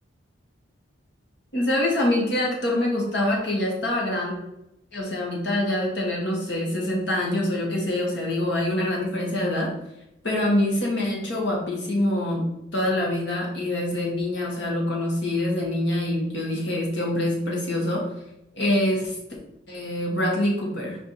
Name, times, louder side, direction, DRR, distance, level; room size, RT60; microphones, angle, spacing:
voice 1, 1.5-4.3 4.9-9.7 10.2-12.5 12.7-18.0 18.5-19.2 19.7-21.0, left 1 dB, 65° left, -2 dB, 2.0 m, -25 dB
5.0 x 4.6 x 4.3 m, 0.87 s
head